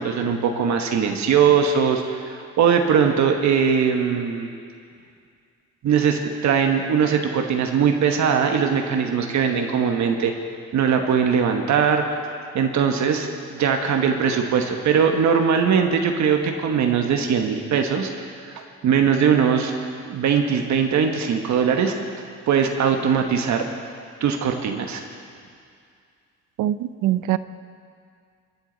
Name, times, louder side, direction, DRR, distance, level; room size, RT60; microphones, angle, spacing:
voice 1, 0.0-4.5 5.8-10.3 10.7-12.0 12.5-18.1 18.5-19.7 20.1-21.9 22.5-23.6 24.2-25.0, right 7 dB, 65° right, 4 dB, 1.2 m, -20 dB
voice 2, 26.6-27.4, right 13 dB, 85° right, 14 dB, 0.6 m, -22 dB
23.5 x 9.9 x 4.0 m, 2.3 s
cardioid pair, 90°, 30 cm